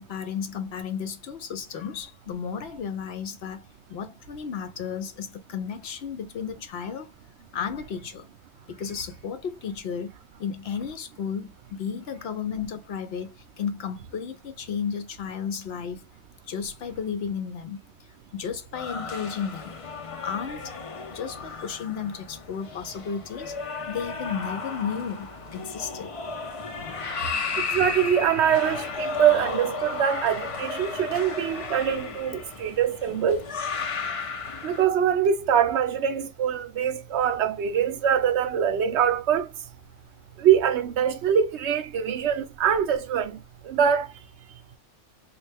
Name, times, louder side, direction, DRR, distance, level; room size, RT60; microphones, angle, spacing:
voice 1, 0.0-7.1 7.5-8.3 8.7-10.1 10.4-16.0 16.5-19.8 20.2-20.7 21.1-23.6 23.9-26.1 26.7-27.7, left 7 dB, 65° left, 0.8 m, -33 dB
sound 1, 18.7-34.8, left 4 dB, 45° left, 0.4 m, -34 dB
voice 2, 27.7-33.4 34.6-39.5 40.4-44.1, right 8 dB, 70° right, 0.8 m, -23 dB
3.2 x 2.4 x 3.3 m
omnidirectional pair, 1.3 m